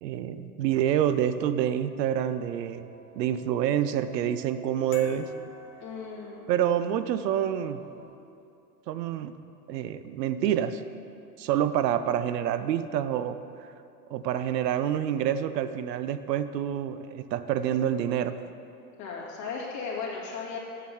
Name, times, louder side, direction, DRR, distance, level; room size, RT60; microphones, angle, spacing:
voice 1, 0.0-2.9 3.2-5.3 6.5-7.8 8.9-9.4 9.7-10.8 11.4-13.7 14.1-18.4, right 10 dB, 80° right, 12 dB, 0.7 m, -27 dB
sound 1, 1.8-8.1, right 3 dB, 45° right, 2.1 m, -53 dB
sound 2, 4.9-6.8, left 6 dB, 55° left, 1.2 m, -48 dB
voice 2, 5.8-6.4 19.0-20.6, left 5 dB, 35° left, -4 dB, 2.2 m, -36 dB
7.4 x 6.2 x 7.0 m, 2.6 s
hypercardioid pair, 125°, 48 cm